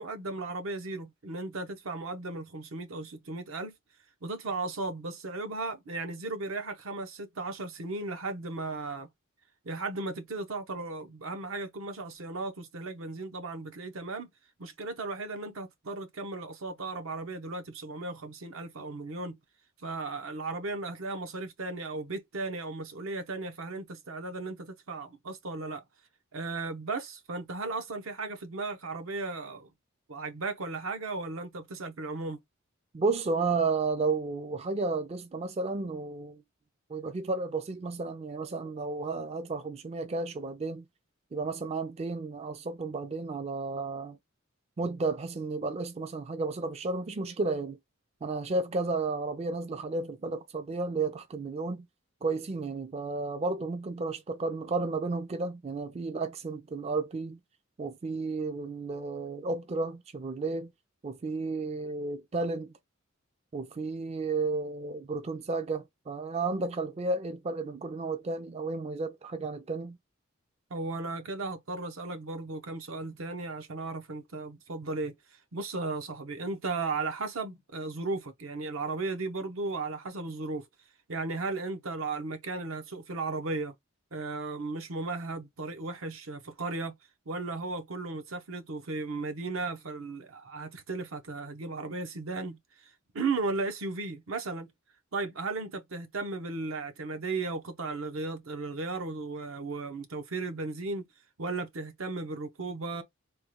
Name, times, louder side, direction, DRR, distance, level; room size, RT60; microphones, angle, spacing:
voice 1, 0.0-3.8 4.2-9.1 9.6-14.3 14.6-19.4 19.8-25.8 26.3-29.7 30.1-32.4 70.7-75.1 75.5-80.6 81.1-83.7 84.1-87.0 87.3-94.7 95.1-101.1 101.4-103.0, right 3 dB, 75° right, 0.8 m, -35 dB
voice 2, 32.9-36.4 36.9-40.9 41.3-44.2 44.8-47.8 48.2-51.9 52.2-57.4 57.8-60.7 61.0-62.7 63.5-70.0, right 3 dB, 30° right, 0.4 m, -32 dB
3.5 x 2.2 x 3.0 m
head